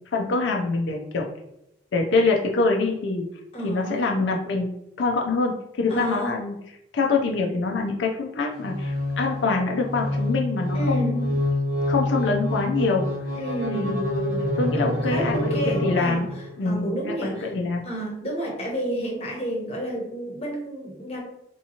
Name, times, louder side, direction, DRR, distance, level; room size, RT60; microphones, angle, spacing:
voice 1, 0.1-1.3 1.9-3.2 3.6-4.7 5.0-6.6 6.9-11.3 11.9-13.1 13.7-16.3 16.6-17.8, left 3 dB, 80° left, 0 dB, 0.5 m, -25 dB
voice 2, 3.5-4.1 5.9-6.4 10.7-11.2 13.3-14.0 14.8-17.5 17.8-21.3, right 1 dB, 35° left, -2 dB, 0.9 m, -31 dB
sound 1, 8.6-16.5, left 1 dB, 50° right, 0.7 m, -27 dB
3.4 x 2.8 x 2.8 m, 0.83 s
head